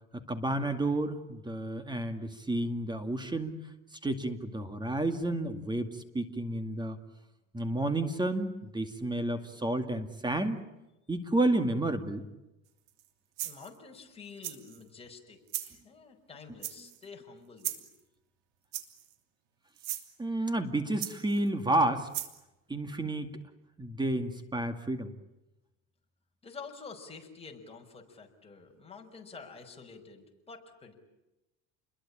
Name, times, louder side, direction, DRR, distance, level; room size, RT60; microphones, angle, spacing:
voice 1, 0.3-3.6 4.0-7.0 7.5-10.6 11.1-12.2 20.2-22.1 22.7-23.3 23.8-25.1, right 1 dB, 15° right, 8 dB, 2.3 m, -31 dB
sound 1, 12.9-13.1 13.4-13.8 14.4-14.8 15.5-15.7 16.6-17.0 17.6-17.9 18.7-19.1 19.8-20.1 21.0-21.5 22.1-22.4, right 13 dB, 85° right, 3.0 m, -37 dB
voice 2, 13.4-17.9 26.4-30.9, left 5 dB, 15° left, 1 dB, 6.0 m, -49 dB
29.0 x 22.0 x 8.8 m, 0.97 s
supercardioid pair, 115°, 34 cm